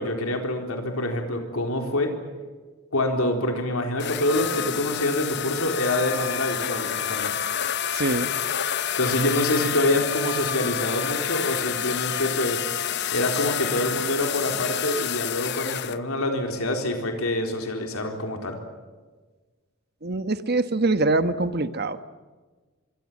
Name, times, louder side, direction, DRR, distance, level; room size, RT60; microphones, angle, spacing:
voice 1, 0.0-2.1 2.9-7.3 9.0-12.6 13.1-18.6, left 1 dB, 85° left, 3 dB, 4.1 m, -26 dB
sound 1, 4.0-16.0, left 9 dB, 55° left, 0.8 m, -28 dB
voice 2, 7.9-8.3 20.0-22.0, right 2 dB, 50° right, 11 dB, 1.2 m, -24 dB
25.0 x 24.5 x 7.5 m, 1.3 s
head